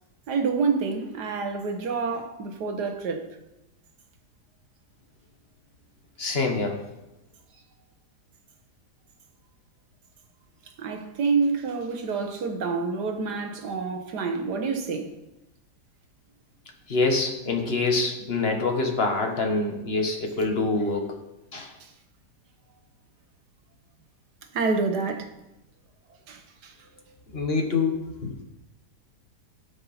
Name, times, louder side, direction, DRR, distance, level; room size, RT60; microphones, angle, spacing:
voice 1, 0.3-3.4 10.8-15.1 21.8-21.9 24.5-25.3 26.3-26.7, right 4 dB, 70° right, 1.7 m, -28 dB
voice 2, 6.2-6.8 16.9-21.1 21.5-21.7 27.3-28.3, left 3 dB, 35° left, 1.6 m, -25 dB
16.5 x 5.6 x 4.3 m
omnidirectional pair, 1.9 m